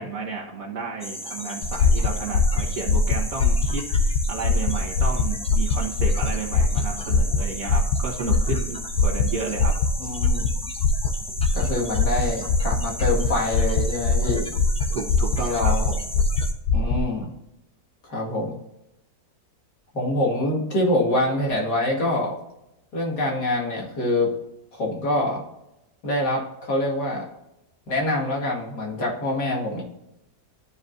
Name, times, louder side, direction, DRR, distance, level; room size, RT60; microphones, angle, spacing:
voice 1, 0.0-9.8 14.9-16.0, right 4 dB, 60° right, -5 dB, 1.7 m, -32 dB
sound 1, 1.0-16.5, left 1 dB, 5° left, 0.6 m, -36 dB
sound 2, 1.6-17.1, left 3 dB, 70° left, 1.2 m, -22 dB
voice 2, 10.0-10.5 11.5-14.5 15.4-15.9 16.7-17.3 18.0-18.6 19.9-22.3 22.9-24.3 24.7-25.4 26.0-27.3 27.9-29.8, left 1 dB, 90° left, -3 dB, 2.6 m, -25 dB
13.0 x 5.0 x 2.7 m, 0.88 s
omnidirectional pair, 1.7 m